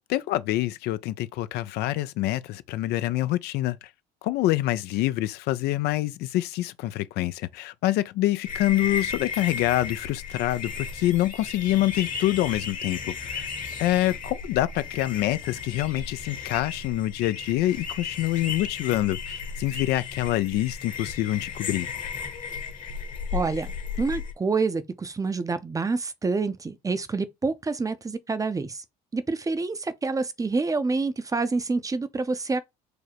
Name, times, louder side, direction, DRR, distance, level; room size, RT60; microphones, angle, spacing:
voice 1, 0.1-3.8 4.2-13.5 13.8-21.9, left 15 dB, 65° left, 0.4 m, -26 dB
sound 1, 8.4-24.3, left 6 dB, 50° left, 1.1 m, -35 dB
voice 2, 23.3-23.7 24.0-28.8 29.1-32.6, right 4 dB, 20° right, 0.6 m, -27 dB
4.8 x 2.0 x 4.3 m
supercardioid pair, 80°, 18 cm